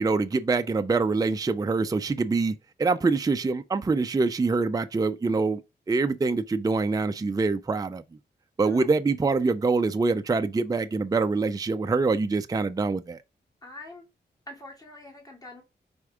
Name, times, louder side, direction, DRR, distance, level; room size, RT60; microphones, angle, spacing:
voice 1, 0.0-5.6 5.9-8.0 8.6-13.2, right 3 dB, 20° right, 0.4 m, -25 dB
voice 2, 13.6-14.0 14.5-15.6, left 1 dB, 20° left, 2.8 m, -44 dB
4.6 x 4.3 x 4.9 m
wide cardioid pair, 90°, 18 cm